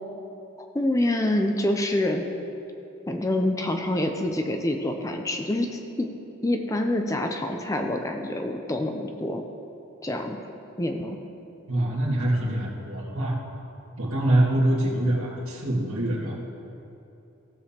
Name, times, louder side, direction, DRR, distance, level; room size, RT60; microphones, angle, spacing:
voice 1, 0.6-2.3 3.1-6.1 6.4-9.4 10.0-10.4 10.8-11.2, left 1 dB, 15° left, 4 dB, 0.4 m, -26 dB
voice 2, 11.7-13.4 14.0-16.3, right 1 dB, 80° right, -4 dB, 1.9 m, -24 dB
16.0 x 6.9 x 2.8 m, 2.9 s
head